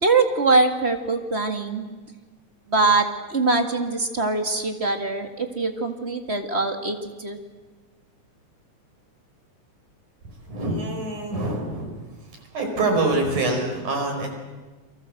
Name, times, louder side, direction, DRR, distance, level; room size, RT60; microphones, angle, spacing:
voice 1, 0.0-1.9 2.7-7.4, right 3 dB, 25° right, 6 dB, 1.8 m, -23 dB
voice 2, 10.5-11.9 12.2-14.3, right 2 dB, 80° right, 2 dB, 6.5 m, -25 dB
29.0 x 24.0 x 7.8 m, 1.3 s
omnidirectional pair, 3.4 m